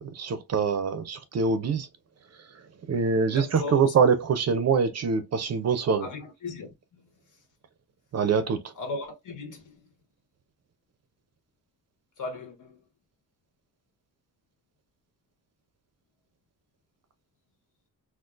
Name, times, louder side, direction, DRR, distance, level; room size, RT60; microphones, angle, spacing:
voice 1, 0.2-1.9 2.9-6.1 8.1-8.6, right 5 dB, 45° right, 0.5 m, -24 dB
voice 2, 3.2-3.9 6.0-7.1 8.8-9.9 12.2-12.8, left 3 dB, 60° left, 1.1 m, -37 dB
3.8 x 2.5 x 2.4 m
wide cardioid pair, 175°, 36 cm